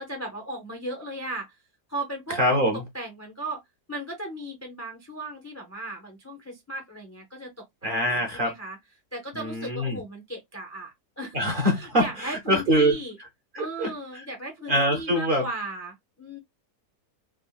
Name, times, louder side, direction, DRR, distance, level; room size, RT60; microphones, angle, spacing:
voice 1, 0.0-1.6 1.9-2.7 2.9-3.6 3.9-8.8 9.1-11.4 11.7-13.2 13.5-16.4, right 1 dB, 25° left, 0.3 m, -36 dB
voice 2, 2.4-2.8 7.8-8.5 9.4-10.0 11.3-12.9 13.5-13.9 14.7-15.4, equal, 45° right, 0.7 m, -24 dB
3.5 x 2.1 x 2.3 m
omnidirectional pair, 1.6 m